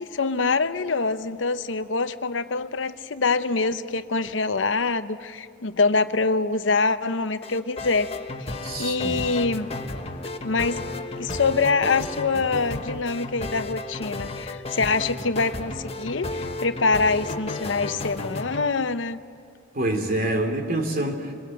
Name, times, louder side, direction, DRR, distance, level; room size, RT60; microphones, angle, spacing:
voice 1, 0.0-8.1 8.4-9.7 10.4-10.8 11.2-19.2, left 4 dB, 75° left, 11 dB, 0.8 m, -25 dB
sound 1, 7.4-18.7, left 2 dB, 35° left, 1.4 m, -33 dB
voice 2, 8.6-9.3 19.7-21.3, right 1 dB, 50° right, 4 dB, 2.9 m, -26 dB
26.0 x 21.5 x 7.8 m, 2.2 s
head